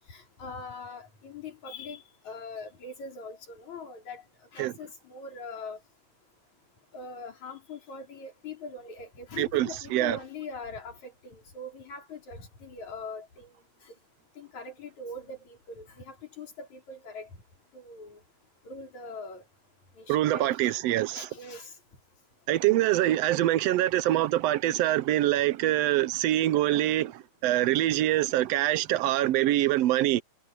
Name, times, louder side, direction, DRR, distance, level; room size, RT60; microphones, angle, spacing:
voice 1, 0.1-4.2 4.5-5.8 6.9-13.5 13.8-13.9 14.4-17.3 17.7-18.2 18.6-19.4 20.0-20.8 21.1-21.7, left 3 dB, 70° left, 6.0 m, -42 dB
voice 2, 9.4-10.2 20.1-21.3 22.5-30.2, right 14 dB, 75° right, 1.6 m, -25 dB
omnidirectional pair, 3.4 m